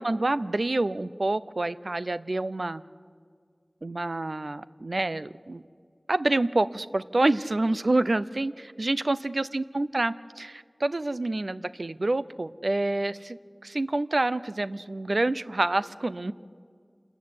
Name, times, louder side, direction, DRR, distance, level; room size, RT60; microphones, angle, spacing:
voice 1, 0.0-2.8 3.8-5.6 6.1-16.3, right 2 dB, 75° right, 15 dB, 0.6 m, -27 dB
27.5 x 14.0 x 9.7 m, 2.1 s
wide cardioid pair, 40°, 0 cm